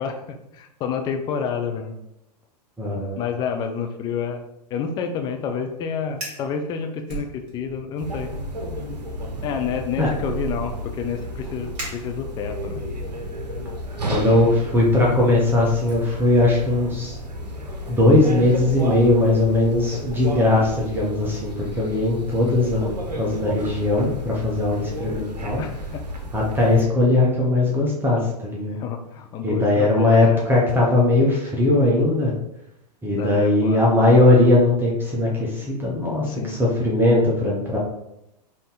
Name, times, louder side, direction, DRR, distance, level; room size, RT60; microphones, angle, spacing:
voice 1, 0.0-1.9 3.2-4.4 4.7-8.3 9.4-12.8 25.6-26.0 28.7-30.5 33.2-33.8 36.3-36.6, left 6 dB, 20° left, 5 dB, 0.5 m, -29 dB
voice 2, 2.8-3.2 10.0-10.1 14.0-17.2 17.9-25.6 26.3-28.8 29.4-32.3 33.0-37.8, left 2 dB, 10° right, -3 dB, 0.7 m, -19 dB
Fire, 6.1-6.5 7.1-7.8 8.2-8.5 9.2-12.6, right 3 dB, 30° right, 1.5 m, -39 dB
sound 1, 8.0-26.9, equal, 75° right, 0.7 m, -32 dB
5.3 x 2.7 x 3.6 m, 0.83 s
figure-of-eight pair, 100°, 21 cm